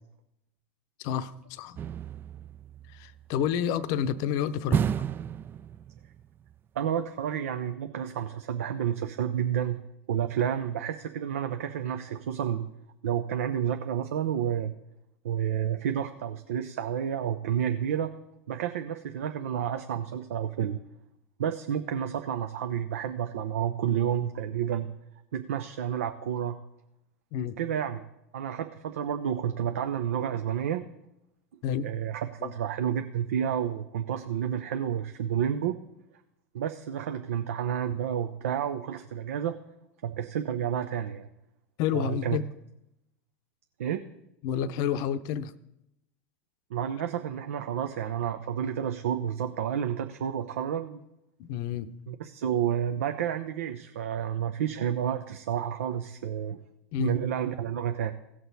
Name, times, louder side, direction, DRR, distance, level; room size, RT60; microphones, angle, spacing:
voice 1, 1.0-1.8 2.9-4.8 27.3-27.6 31.6-31.9 32.4-32.5 41.8-42.4 44.4-45.5 51.4-52.0 56.9-57.2, left 9 dB, 55° left, 13 dB, 0.7 m, -29 dB
sound 1, 1.8-3.4 4.7-6.2 6.5-6.6, right 8 dB, 30° right, 0.3 m, -31 dB
voice 2, 6.7-9.8 10.1-12.7 13.0-14.7 15.2-18.1 18.5-20.8 21.4-24.9 25.3-26.6 27.6-28.0 28.3-30.8 31.8-35.8 36.5-39.6 40.0-41.3 41.9-42.4 43.8-44.0 46.7-51.0 52.1-56.6 57.0-58.1, right 9 dB, 80° right, 7 dB, 0.6 m, -30 dB
17.0 x 6.1 x 4.1 m, 0.85 s
hypercardioid pair, 95°, 7 cm